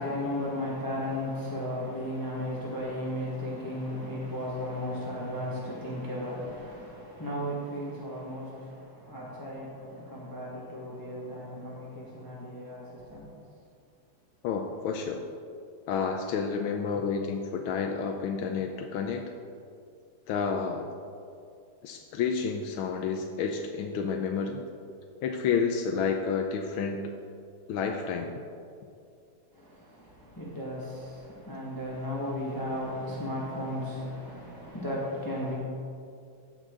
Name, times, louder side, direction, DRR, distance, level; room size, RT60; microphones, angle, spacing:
voice 1, 0.0-13.3 29.5-35.6, left 1 dB, 10° left, -6 dB, 1.4 m, -35 dB
voice 2, 14.4-15.2 15.9-19.2 20.3-20.9 21.8-24.6 25.2-27.0 27.7-28.3, left 6 dB, 80° left, 3 dB, 1.4 m, -30 dB
16.5 x 6.3 x 3.8 m, 2.5 s
omnidirectional pair, 2.4 m